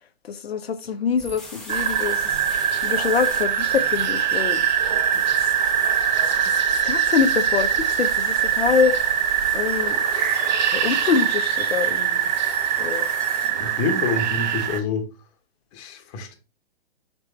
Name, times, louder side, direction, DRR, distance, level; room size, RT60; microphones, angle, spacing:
voice 1, 0.2-2.4 2.8-4.7 4.9-5.5 6.4-6.6 6.8-8.9 9.5-10.0 10.5-12.3 12.8-13.1, left 6 dB, 75° left, 0.7 m, -25 dB
sound 1, 1.2-13.5, left 1 dB, ahead, 0.5 m, -42 dB
sound 2, 1.7-14.8, right 8 dB, 45° right, 0.6 m, -22 dB
voice 2, 13.6-15.1 15.7-16.4, left 4 dB, 30° left, 0.9 m, -27 dB
5.2 x 3.3 x 3.2 m
figure-of-eight pair, 125°, 31 cm